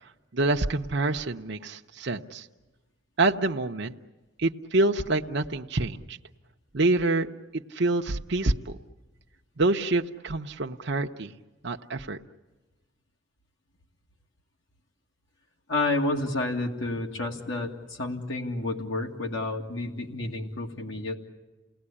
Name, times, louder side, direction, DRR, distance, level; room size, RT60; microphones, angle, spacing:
voice 1, 0.3-2.5 3.2-3.9 4.4-6.2 6.7-7.3 7.5-8.8 9.6-11.3 11.6-12.2, right 2 dB, 60° right, 3 dB, 0.8 m, -26 dB
voice 2, 15.7-21.2, left 2 dB, 75° left, 1 dB, 2.3 m, -30 dB
29.5 x 19.0 x 9.9 m, 1.2 s
head